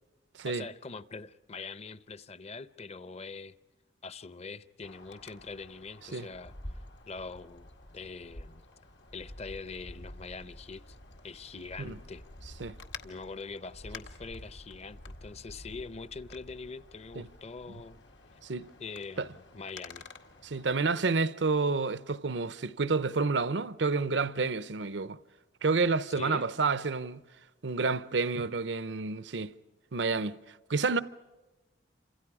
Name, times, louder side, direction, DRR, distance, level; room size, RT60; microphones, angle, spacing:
voice 1, 0.4-3.6 4.0-6.5 7.1-8.6 9.1-11.0 11.2-12.2 13.0-18.0 18.8-20.1 26.1-26.5, left 4 dB, 35° left, 0.7 m, -43 dB
Wind, 4.8-20.8, left 2 dB, 85° left, 2.0 m, -49 dB
voice 2, 20.4-25.2 25.6-27.2 27.6-29.5 29.9-30.4 30.7-31.0, right 4 dB, 90° right, 0.8 m, -29 dB
29.5 x 27.0 x 4.9 m
head